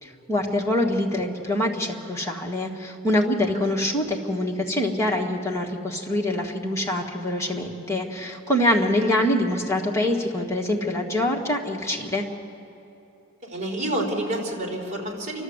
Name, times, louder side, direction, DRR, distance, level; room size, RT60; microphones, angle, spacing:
voice 1, 0.0-12.2, left 1 dB, 15° left, -1 dB, 1.8 m, -25 dB
voice 2, 13.4-15.4, right 1 dB, 35° right, -2 dB, 4.0 m, -28 dB
28.5 x 13.0 x 8.1 m, 2.9 s
head